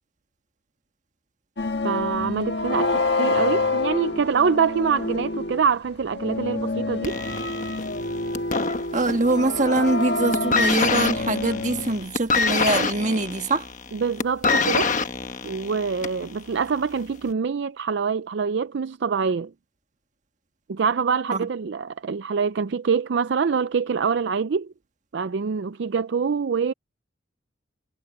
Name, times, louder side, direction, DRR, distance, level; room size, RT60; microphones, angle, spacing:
sound 1, 1.6-5.7 6.1-12.0, left 2 dB, 55° left, 1.6 m, -27 dB
voice 1, 1.8-7.2 13.9-14.9 15.4-19.5 20.7-24.7 25.1-26.7, right 6 dB, 60° right, 0.4 m, -25 dB
sound 2, 7.0-9.4 9.7-10.0 10.3-16.3 17.1-17.2, left 4 dB, 40° left, 1.2 m, -25 dB
voice 2, 8.9-13.7 21.3-21.5, right 2 dB, 40° right, 1.6 m, -23 dB
head